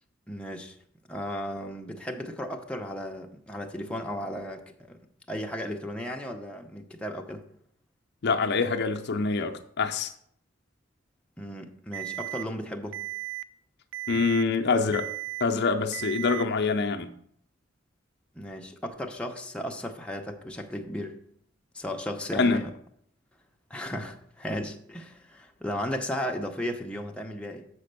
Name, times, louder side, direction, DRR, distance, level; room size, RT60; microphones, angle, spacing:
voice 1, 0.3-0.8 1.1-4.6 4.9-5.0 5.3-7.5 11.4-13.0 18.3-21.1 21.7-22.7 23.7-27.7, equal, 5° left, 0.7 m, -35 dB
voice 2, 8.2-10.1 14.1-15.1 15.4-17.1 22.3-22.6, left 4 dB, 60° left, 0.6 m, -25 dB
Alarm, 11.9-12.4 12.9-13.4 13.9-14.4 14.9-15.4 15.9-16.4, right 19 dB, 70° right, 0.3 m, -35 dB
6.9 x 4.2 x 6.6 m
head